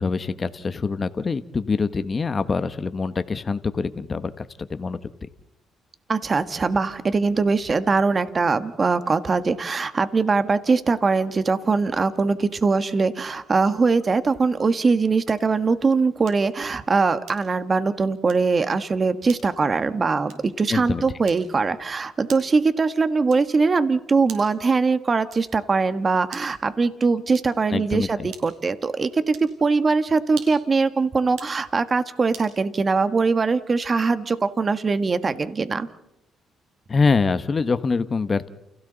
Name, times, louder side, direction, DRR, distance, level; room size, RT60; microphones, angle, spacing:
voice 1, 0.0-5.0 20.7-21.0 27.7-28.3 36.9-38.5, left 4 dB, 35° left, 11 dB, 1.1 m, -24 dB
voice 2, 6.1-35.9, right 4 dB, 35° right, 11 dB, 1.4 m, -22 dB
sound 1, 15.2-15.6 16.3-16.6 17.2-17.7 18.2-18.5 19.2-19.5 20.2-20.6 21.2-21.7 22.3-22.6 23.3-23.6 24.2-24.7 25.3-25.6 26.2-26.6 27.3-27.7 28.3-28.7 29.3-29.6 30.3-30.7 31.3-31.6 32.3-32.6, right 8 dB, 85° right, 4.8 m, -44 dB
29.5 x 29.0 x 4.0 m, 0.89 s
cardioid pair, 90°, 0 cm